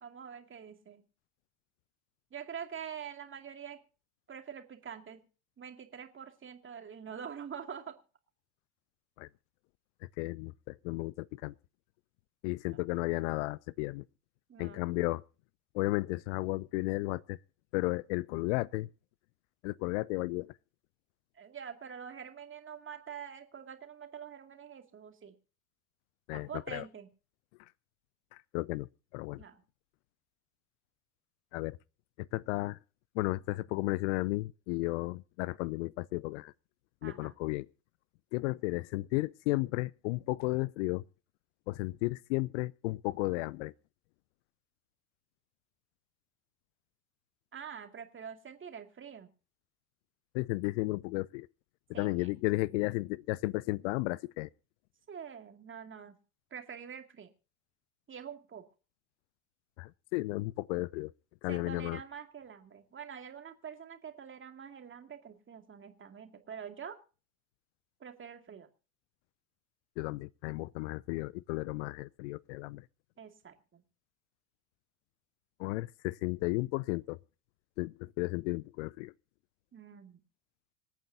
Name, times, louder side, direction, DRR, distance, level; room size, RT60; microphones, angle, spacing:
voice 1, 0.0-1.0 2.3-3.8 4.3-5.2 5.6-8.0 14.5-14.9 21.3-25.3 26.3-27.1 29.4-29.6 37.0-37.3 47.5-49.3 51.9-52.3 55.1-56.1 56.5-57.3 58.1-58.6 61.5-67.0 68.0-68.7 73.2-73.8 79.7-80.2, right 7 dB, 25° right, 2.4 m, -45 dB
voice 2, 10.2-11.5 12.4-14.0 14.6-15.2 15.7-17.4 17.7-18.9 19.6-20.5 26.3-26.8 28.3-28.9 29.1-29.4 31.5-31.8 32.2-32.8 33.2-36.5 37.0-37.7 38.3-41.0 41.7-43.7 50.3-51.5 51.9-54.5 59.8-61.1 61.4-62.0 70.0-72.8 75.6-77.2 77.8-79.1, left 22 dB, 55° left, 0.5 m, -34 dB
26.5 x 9.1 x 2.7 m
figure-of-eight pair, 70°, 44 cm